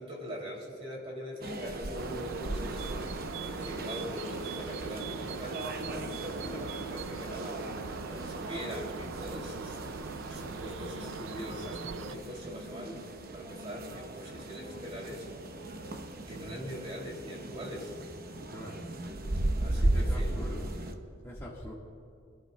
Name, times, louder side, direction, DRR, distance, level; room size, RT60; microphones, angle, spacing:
voice 1, 0.0-3.3 3.5-15.3 16.3-17.9 19.3-20.4, equal, 30° right, -1 dB, 2.7 m, -42 dB
sound 1, 1.4-20.9, right 1 dB, 50° right, 0.9 m, -37 dB
sound 2, 1.9-12.1, right 5 dB, 65° right, 0.5 m, -40 dB
voice 2, 18.5-18.9 19.7-20.7 21.2-21.7, equal, 15° left, -5 dB, 1.5 m, -44 dB
30.0 x 12.0 x 2.2 m, 2.4 s
head